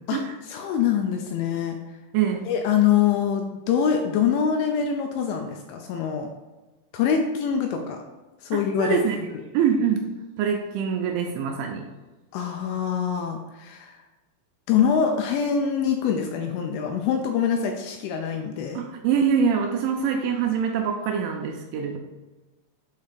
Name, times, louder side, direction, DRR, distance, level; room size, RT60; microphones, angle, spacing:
voice 1, 0.5-1.8 2.5-6.3 6.9-8.0 8.4-9.4 12.3-14.0 14.7-18.8, left 7 dB, 85° left, 3 dB, 2.7 m, -24 dB
voice 2, 2.1-2.5 8.5-9.2 9.5-10.1 10.4-11.9 18.7-22.0, right 7 dB, 80° right, 2 dB, 2.8 m, -24 dB
8.0 x 2.8 x 5.0 m, 1.2 s
omnidirectional pair, 5.7 m